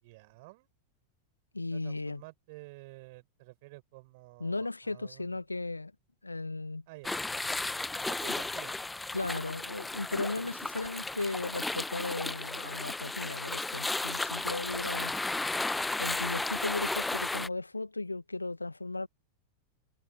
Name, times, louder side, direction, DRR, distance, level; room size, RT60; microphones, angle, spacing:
voice 1, 0.0-0.7 1.7-5.4 6.9-7.2 8.0-8.8, right 24 dB, 50° right, 6.6 m, -51 dB
voice 2, 1.5-2.2 4.4-5.9 6.2-6.8 9.1-15.2 16.0-19.1, left 2 dB, 80° left, 1.0 m, -36 dB
sound 1, 7.0-17.5, left 2 dB, 10° left, 1.1 m, -34 dB
figure-of-eight pair, 90°, 0 cm